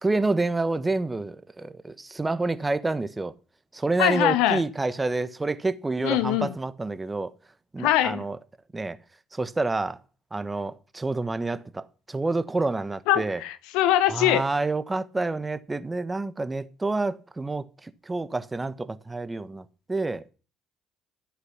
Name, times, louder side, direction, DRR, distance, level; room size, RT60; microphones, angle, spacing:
voice 1, 0.0-3.3 3.7-7.3 7.7-8.4 8.7-9.0 9.3-10.0 10.3-13.4 14.1-20.3, right 2 dB, 20° right, 1.3 m, -28 dB
voice 2, 4.0-4.6 6.0-6.5 7.8-8.2 13.1-14.4, left 13 dB, 75° left, 0.9 m, -22 dB
13.0 x 8.1 x 5.8 m
hypercardioid pair, 60°, 0 cm